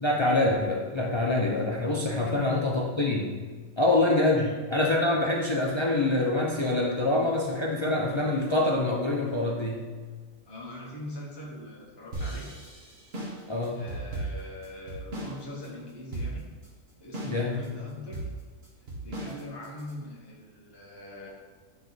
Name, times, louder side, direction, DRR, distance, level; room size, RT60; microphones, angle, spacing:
voice 1, 0.0-3.4 3.8-9.9 13.5-13.8 17.3-17.6, left 2 dB, 45° left, -2 dB, 0.3 m, -25 dB
voice 2, 2.2-2.5 4.4-4.5 10.5-12.5 13.7-16.5 17.0-18.3 19.0-21.3, left 1 dB, 20° left, -4 dB, 1.1 m, -42 dB
sound 1, 12.1-15.4 15.6-15.7 16.1-16.7 17.1-17.7 18.1-19.9, right 2 dB, 50° right, 1.6 m, -36 dB
9.4 x 3.3 x 4.0 m, 1.4 s
omnidirectional pair, 1.4 m